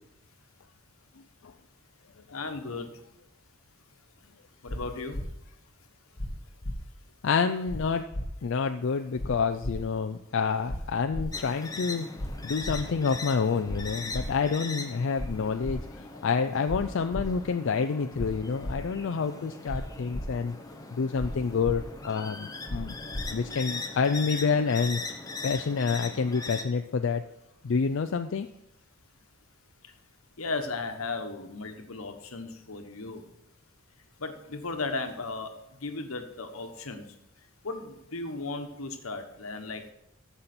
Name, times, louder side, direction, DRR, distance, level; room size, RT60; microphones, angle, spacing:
voice 1, 2.3-2.9 4.6-5.2 30.4-33.2 34.2-35.5 35.8-37.0 37.6-39.8, left 3 dB, 85° left, 6 dB, 1.2 m, -35 dB
sound 1, 4.7-4.8 5.1-5.2 6.2-6.3 6.6-6.8 7.7-7.8 8.1-8.3 9.2-9.3 9.6-9.7 10.7-10.8 11.1-11.3 12.2-12.3 12.6-12.8 13.7-13.8 14.1-14.3 15.2-15.3 15.6-15.8 16.7-16.8 17.1-17.2 18.2-18.3 18.6-18.8 19.7-19.8 20.1-20.2 21.2-21.3 21.6-21.8 22.7-22.8 23.1-23.2, left 1 dB, 45° left, 1.2 m, -34 dB
voice 2, 7.2-8.0 8.4-12.1 12.4-15.8 16.2-20.5 20.9-23.0 23.3-25.0 25.4-27.2 27.6-28.5, left 5 dB, 60° left, 7 dB, 0.4 m, -28 dB
sound 2, 11.3-26.6, left 3 dB, 15° left, 0.8 m, -40 dB
14.5 x 5.6 x 4.3 m, 0.85 s
head